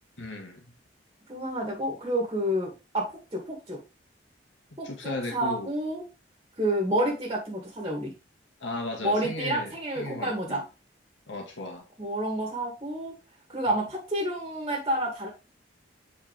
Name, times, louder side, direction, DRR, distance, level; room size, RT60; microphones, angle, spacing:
voice 1, 0.2-0.7 4.8-5.7 8.6-10.6 11.3-11.8, left 2 dB, 90° left, 1 dB, 1.9 m, -36 dB
voice 2, 1.3-3.8 4.8-6.1 6.6-8.1 9.0-10.6 12.0-13.2 13.5-15.3, right 1 dB, 25° right, -1 dB, 2.3 m, -29 dB
8.3 x 4.8 x 3.4 m, 0.28 s
head